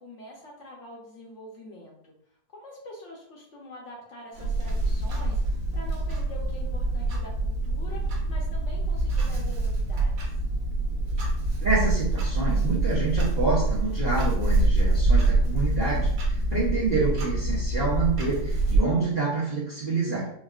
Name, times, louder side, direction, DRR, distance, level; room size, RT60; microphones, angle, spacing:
voice 1, 0.0-2.1 2.5-10.3, left 1 dB, 60° left, -2 dB, 0.9 m, -45 dB
Clock, 4.4-18.8, right 2 dB, 65° right, 1.3 m, -25 dB
voice 2, 11.6-20.3, right 3 dB, 50° right, -7 dB, 0.7 m, -27 dB
4.4 x 2.2 x 2.3 m, 0.69 s
omnidirectional pair, 1.6 m